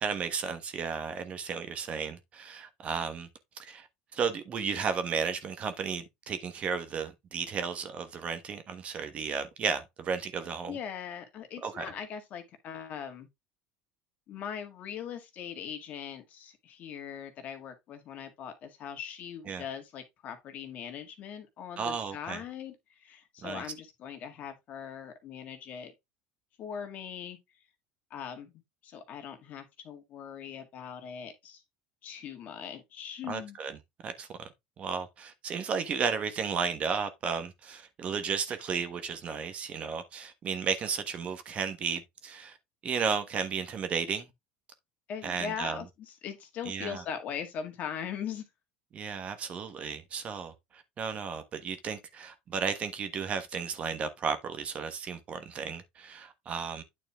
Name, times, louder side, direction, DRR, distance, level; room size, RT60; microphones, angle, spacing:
voice 1, 0.0-3.3 3.6-3.9 4.1-10.8 11.6-11.8 19.5-19.6 21.8-22.4 23.4-23.6 33.3-33.8 34.0-34.5 34.8-42.6 42.8-44.3 45.2-45.8 46.7-47.0 48.9-50.5 51.0-56.8, right 6 dB, 35° right, 1.2 m, -33 dB
voice 2, 10.7-13.3 14.3-25.9 26.6-27.4 28.1-28.5 28.8-31.6 32.0-33.6 45.1-48.4, left 8 dB, 45° left, 1.8 m, -40 dB
9.1 x 4.4 x 3.5 m
supercardioid pair, 130°, 4 cm